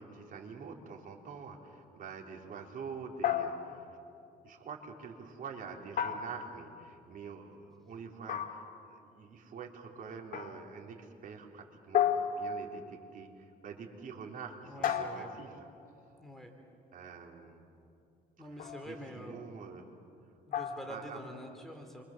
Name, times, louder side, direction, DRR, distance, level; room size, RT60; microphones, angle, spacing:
voice 1, 0.0-4.0 4.4-15.6 16.0-16.2 16.9-17.6 18.8-19.9 20.7-21.2, right 5 dB, 55° right, 2 dB, 3.7 m, -46 dB
sound 1, 3.2-4.0 6.0-6.8 8.3-8.9 10.3-10.7 11.9-12.9 14.8-15.6 18.6-18.9 20.5-21.0, left 8 dB, 55° left, 2.1 m, -33 dB
voice 2, 14.7-15.4 16.2-16.5 18.4-19.4 20.5-22.0, equal, ahead, 3 dB, 3.5 m, -46 dB
28.5 x 25.0 x 7.5 m, 2.6 s
cardioid pair, 110°, 17 cm